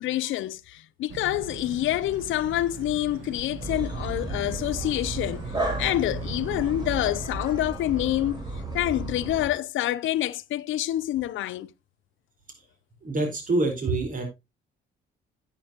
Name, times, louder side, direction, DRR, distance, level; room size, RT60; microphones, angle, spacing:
voice 1, 0.0-8.4 8.7-11.7, left 14 dB, 80° left, 0.6 m, -27 dB
sound 1, 1.1-7.1, right 7 dB, 75° right, 1.4 m, -40 dB
sound 2, 3.6-9.5, right 2 dB, 20° right, 3.9 m, -33 dB
voice 2, 13.0-14.2, right 2 dB, 40° right, 4.3 m, -26 dB
10.0 x 9.1 x 2.9 m
cardioid pair, 90°, 20 cm